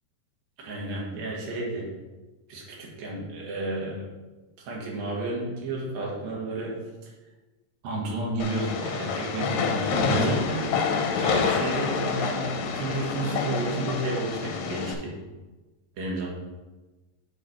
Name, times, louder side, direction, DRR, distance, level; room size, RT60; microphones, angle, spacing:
voice 1, 0.6-1.9 2.5-4.0 4.6-6.7 7.0-7.1 7.8-10.7 11.1-15.2 16.0-16.3, right 2 dB, 80° right, -2 dB, 3.3 m, -31 dB
Train, 8.4-14.9, left 5 dB, 80° left, 2.4 m, -27 dB
7.7 x 5.0 x 4.5 m, 1.2 s
omnidirectional pair, 4.1 m